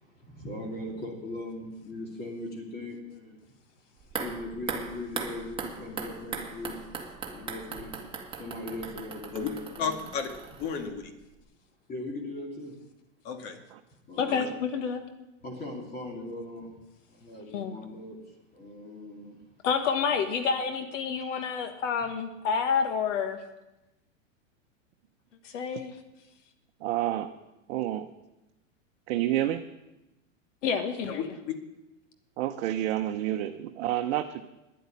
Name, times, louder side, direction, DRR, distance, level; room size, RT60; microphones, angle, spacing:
voice 1, 0.1-3.4 4.2-6.8 7.3-7.9 8.3-9.9 11.9-12.8 14.1-14.6 15.4-16.8 17.1-19.4 21.2-21.3, left 1 dB, 25° left, 0 dB, 2.6 m, -39 dB
sound 1, 4.0-11.1 11.4-11.5, right 5 dB, 15° right, 1.8 m, -39 dB
voice 2, 9.8-10.3 10.6-11.1 13.2-13.6 14.3-14.5 31.1-31.5, left 6 dB, 45° left, 6 dB, 2.0 m, -33 dB
voice 3, 14.2-15.0 17.5-17.8 19.6-23.4 25.4-25.9 30.6-31.3, left 6 dB, 65° left, 7 dB, 1.5 m, -29 dB
voice 4, 26.8-27.3 27.7-28.1 29.1-29.6 32.4-34.4, right 13 dB, 55° right, 5 dB, 0.9 m, -29 dB
10.5 x 8.0 x 9.7 m, 0.97 s
hypercardioid pair, 125°, 39 cm